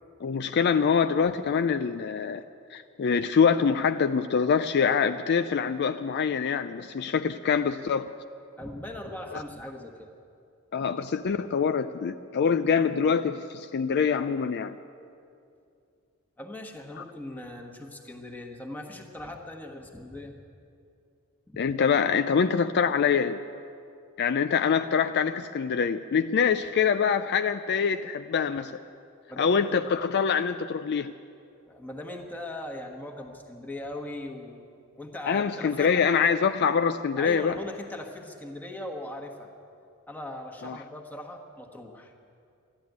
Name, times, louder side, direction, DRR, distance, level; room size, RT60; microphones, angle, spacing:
voice 1, 0.2-2.4 2.7-8.1 9.3-9.4 10.7-14.8 17.0-17.1 21.6-23.4 24.2-28.8 29.4-31.1 35.3-37.6 40.6-40.8, left 6 dB, 50° left, 10 dB, 0.4 m, -25 dB
voice 2, 8.6-10.1 16.4-20.3 21.5-21.6 29.3-29.9 31.7-34.7 35.0-36.1 37.2-39.5 40.1-42.1, left 1 dB, 10° left, 1 dB, 1.4 m, -40 dB
13.5 x 11.5 x 9.3 m, 2.5 s
head